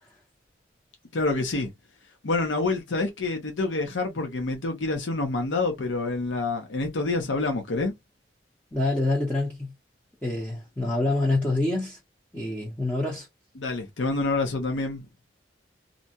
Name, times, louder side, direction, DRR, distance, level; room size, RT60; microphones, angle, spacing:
voice 1, 1.1-1.7 2.2-8.0 13.6-15.1, left 3 dB, 85° left, 0.7 m, -27 dB
voice 2, 8.7-9.7 10.2-12.0 12.3-13.3, left 2 dB, 10° left, 0.8 m, -26 dB
2.6 x 2.2 x 2.7 m
head